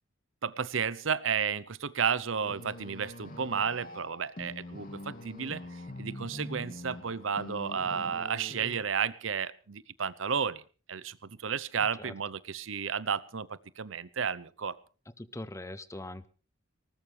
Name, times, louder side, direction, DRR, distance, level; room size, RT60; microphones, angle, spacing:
voice 1, 0.4-10.6 10.9-14.8, right 6 dB, 80° right, 18 dB, 0.8 m, -32 dB
sound 1, 2.4-8.8, left 1 dB, 45° left, 2.7 m, -44 dB
voice 2, 15.2-16.3, left 1 dB, 15° left, 15 dB, 0.8 m, -41 dB
20.0 x 19.0 x 3.4 m, 0.35 s
head